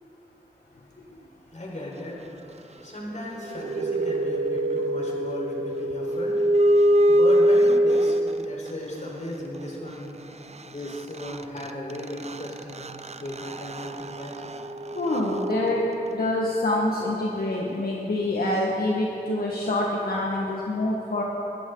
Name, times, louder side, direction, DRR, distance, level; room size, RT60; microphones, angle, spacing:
voice 1, 1.1-10.2 10.6-12.9 13.2-14.4, left 1 dB, 50° left, -3 dB, 4.5 m, -36 dB
sound 1, 3.3-8.7 10.6-10.7 10.9-16.4, right 1 dB, 45° right, 0.7 m, -24 dB
voice 2, 14.9-15.8 16.1-21.2, left 1 dB, 75° left, -3 dB, 1.6 m, -26 dB
23.0 x 13.5 x 4.0 m, 3.0 s
cardioid pair, 55°, 16 cm